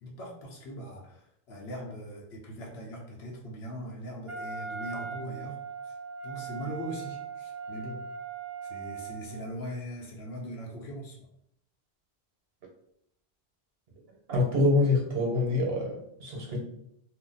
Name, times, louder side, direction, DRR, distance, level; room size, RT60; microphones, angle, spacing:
voice 1, 0.0-5.6 5.8-6.0 6.2-8.0 8.6-11.2, equal, 80° left, -1 dB, 0.9 m, -40 dB
Wind instrument woodwind instrument, 4.3-9.5, right 6 dB, 35° right, 0.7 m, -39 dB
voice 2, 14.3-16.6, left 2 dB, 75° right, -1 dB, 1.1 m, -26 dB
2.7 x 2.2 x 3.8 m, 0.72 s
omnidirectional pair, 1.1 m